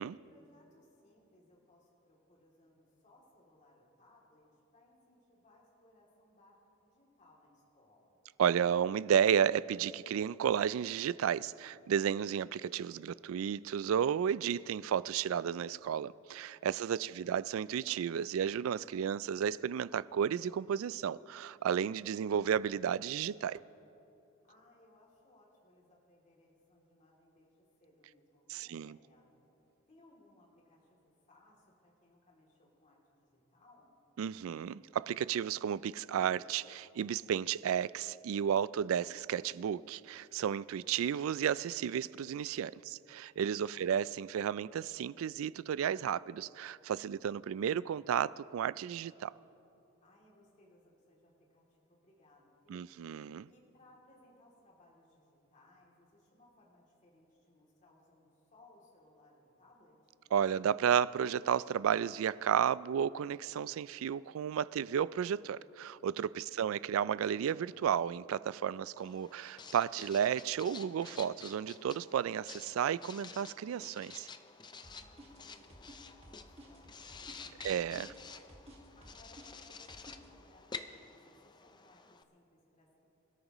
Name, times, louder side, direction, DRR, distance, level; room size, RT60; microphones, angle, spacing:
voice 1, 0.1-8.2 16.7-17.3 24.4-29.3 29.9-34.0 43.4-43.9 50.0-52.9 53.5-60.3 66.3-67.1 74.8-78.2 78.9-83.0, left 1 dB, 35° left, 2.7 m, -65 dB
voice 2, 8.4-23.6 28.5-29.0 34.2-49.3 52.7-53.5 60.3-74.3 77.6-78.1, right 8 dB, 75° right, 0.3 m, -33 dB
Writing, 69.0-82.2, left 5 dB, 20° left, 0.5 m, -50 dB
sound 1, 74.8-80.3, right 1 dB, 30° right, 1.7 m, -55 dB
26.5 x 13.5 x 3.0 m
head